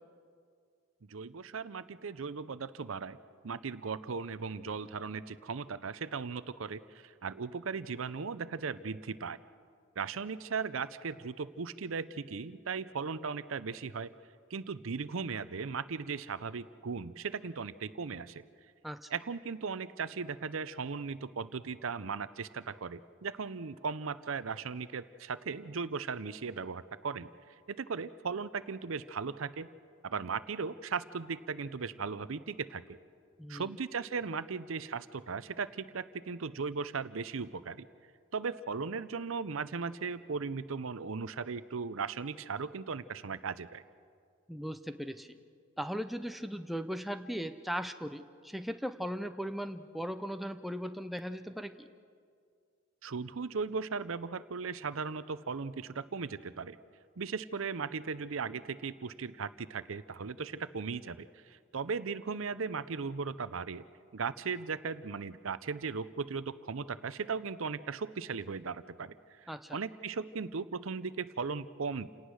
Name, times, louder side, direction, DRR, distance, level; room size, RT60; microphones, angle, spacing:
voice 1, 1.1-3.2 3.4-9.4 10.0-14.1 14.5-18.4 19.1-27.3 27.7-29.7 30.0-33.0 33.5-37.9 38.3-43.8 53.0-56.8 57.2-63.8 64.1-72.1, right 5 dB, 70° right, 15 dB, 0.6 m, -37 dB
voice 2, 44.5-45.3 45.8-51.9 69.5-69.8, equal, ahead, 8 dB, 0.6 m, -38 dB
28.5 x 18.5 x 6.4 m, 2.2 s
head